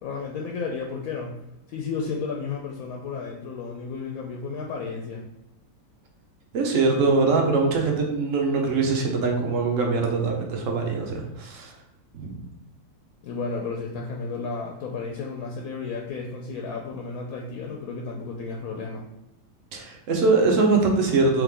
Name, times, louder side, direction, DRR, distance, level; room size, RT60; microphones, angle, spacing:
voice 1, 0.0-1.4 1.7-5.2 13.2-19.1, left 4 dB, 70° left, 0 dB, 0.9 m, -33 dB
voice 2, 6.5-11.7 12.1-12.3 19.7-21.4, right 3 dB, 55° right, 1 dB, 1.0 m, -22 dB
3.5 x 3.0 x 3.6 m, 0.90 s
omnidirectional pair, 1.9 m